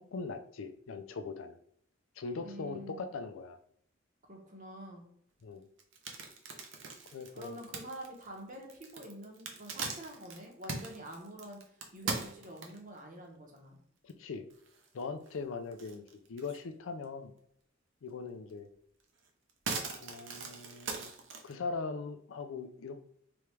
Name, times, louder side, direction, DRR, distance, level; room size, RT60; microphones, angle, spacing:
voice 1, 0.0-1.6 2.2-3.6 5.4-5.6 7.1-7.6 14.0-14.5 14.9-16.0 16.3-17.3 18.0-18.7 20.0-21.1 21.4-23.0, left 4 dB, 80° left, 8 dB, 0.4 m, -40 dB
voice 2, 2.4-3.1 4.3-5.1 7.4-11.6 11.9-13.8, equal, 40° right, 1 dB, 0.9 m, -47 dB
sound 1, 5.8-13.0 13.6-13.7 14.1-14.2 14.5-15.3 15.7-16.7 17.0-17.1 18.5-18.6 19.0-21.5, right 4 dB, 65° right, 0.7 m, -41 dB
3.5 x 3.3 x 3.2 m, 0.68 s
head